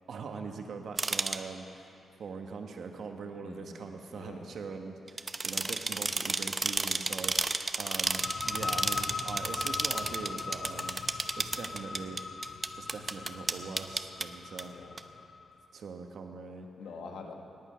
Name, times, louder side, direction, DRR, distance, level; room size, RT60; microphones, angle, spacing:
voice 1, 0.1-1.9 2.2-12.3 12.8-14.7 15.7-16.7, right 4 dB, 70° right, 4 dB, 1.2 m, -42 dB
sound 1, 1.0-1.4 5.1-14.2 14.6-14.7 15.0-15.1, right 3 dB, 30° right, 0.6 m, -32 dB
voice 2, 3.4-3.8 4.1-4.6 14.6-15.0 16.8-17.3, left 4 dB, 90° left, 3 dB, 1.4 m, -45 dB
sound 2, 8.0-15.5, left 5 dB, 50° left, 0.5 m, -39 dB
18.0 x 8.9 x 5.7 m, 2.7 s
cardioid pair, 90°, 0 cm